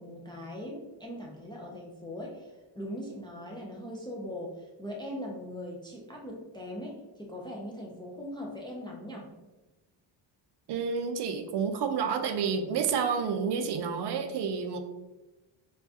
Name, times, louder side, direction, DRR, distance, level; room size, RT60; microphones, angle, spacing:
voice 1, 0.0-9.3, equal, 10° left, -2 dB, 0.3 m, -40 dB
voice 2, 10.7-14.8, right 6 dB, 60° right, 6 dB, 0.5 m, -29 dB
4.6 x 2.3 x 2.7 m, 1.1 s
cardioid pair, 135°, 48 cm